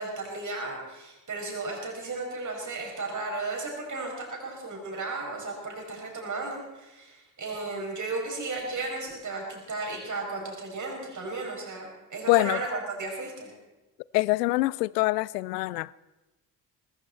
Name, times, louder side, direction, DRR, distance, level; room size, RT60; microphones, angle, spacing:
voice 1, 0.0-13.5, right 3 dB, 35° right, 6.1 m, -34 dB
voice 2, 12.3-12.6 14.1-15.9, left 20 dB, 75° left, 0.6 m, -24 dB
20.0 x 15.5 x 4.4 m
figure-of-eight pair, 45°, 49 cm